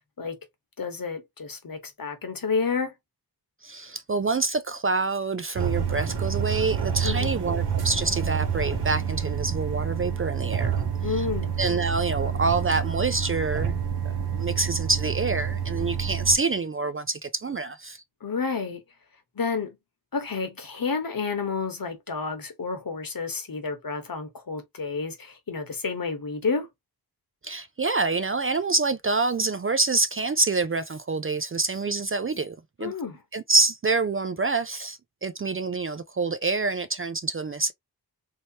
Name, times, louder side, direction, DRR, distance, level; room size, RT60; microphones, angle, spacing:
voice 1, 0.8-2.9 7.0-7.5 11.0-11.5 18.2-18.8 19.3-19.8 20.1-26.7 32.8-33.2, left 5 dB, 60° left, 1.2 m, -30 dB
voice 2, 3.6-10.7 11.1-11.3 11.6-13.8 14.0-18.0 27.4-32.9 33.3-37.7, right 3 dB, 35° right, 0.4 m, -26 dB
sound 1, 5.6-16.4, right 7 dB, 75° right, 0.9 m, -28 dB
3.1 x 2.9 x 2.7 m
wide cardioid pair, 85°, 40 cm